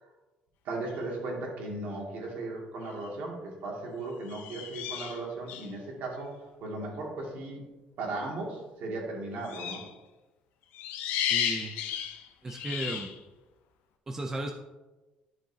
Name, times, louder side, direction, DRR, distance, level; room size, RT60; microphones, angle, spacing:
voice 1, 0.6-6.3 6.6-7.6 8.0-9.9, right 2 dB, 60° right, -1 dB, 2.3 m, -36 dB
sound 1, 2.9-3.1 4.3-5.7 9.4-9.9 10.7-13.2, left 9 dB, 85° left, 0.8 m, -33 dB
voice 2, 11.3-11.8 12.4-13.1 14.1-14.5, right 2 dB, 15° right, 3 dB, 0.5 m, -35 dB
11.5 x 5.9 x 2.8 m, 1.1 s
cardioid pair, 165°, 3 cm